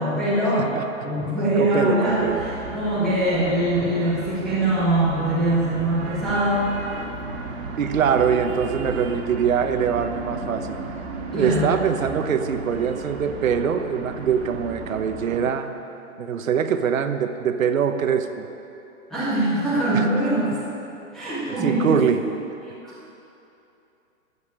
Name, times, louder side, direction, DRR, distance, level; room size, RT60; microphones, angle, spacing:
voice 1, 0.0-0.7 1.0-6.7 11.3-11.8 19.1-20.5 21.1-22.0, right 1 dB, ahead, -12 dB, 0.5 m, -22 dB
voice 2, 1.6-2.4 7.7-10.8 11.3-15.7 16.2-18.5 19.9-20.1 21.5-22.2, right 7 dB, 75° right, 8 dB, 1.1 m, -23 dB
sound 1, 2.1-15.5, right 3 dB, 50° right, 1.9 m, -34 dB
13.0 x 7.3 x 8.7 m, 2.8 s
hypercardioid pair, 165°, 41 cm